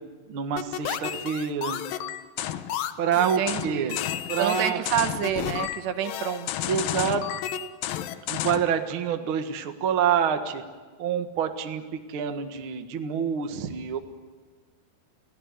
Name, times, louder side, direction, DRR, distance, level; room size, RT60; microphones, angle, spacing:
voice 1, 0.3-1.8 3.0-4.0 4.3-4.8 6.7-7.4 8.3-10.6 11.0-14.0, right 8 dB, 55° right, 6 dB, 1.5 m, -27 dB
sound 1, 0.6-8.7, left 11 dB, 70° left, 2.4 m, -31 dB
voice 2, 3.2-4.0 4.4-6.7, right 10 dB, 90° right, 8 dB, 3.7 m, -28 dB
29.5 x 17.0 x 9.6 m, 1.4 s
omnidirectional pair, 4.8 m